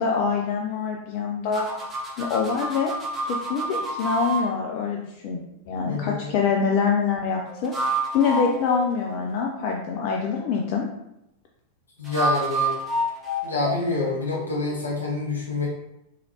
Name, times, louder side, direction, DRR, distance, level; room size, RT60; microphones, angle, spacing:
voice 1, 0.0-1.7 2.2-2.9 3.2-7.7 8.1-10.9, left 5 dB, 45° left, 0 dB, 0.4 m, -25 dB
sound 1, 1.5-4.4 7.5-9.6 12.0-14.9, right 1 dB, 10° right, 1.1 m, -29 dB
voice 2, 5.8-6.4 12.0-12.7 13.4-15.7, left 2 dB, 75° left, -4 dB, 1.2 m, -27 dB
4.0 x 3.1 x 2.8 m, 0.84 s
figure-of-eight pair, 90°, 0 cm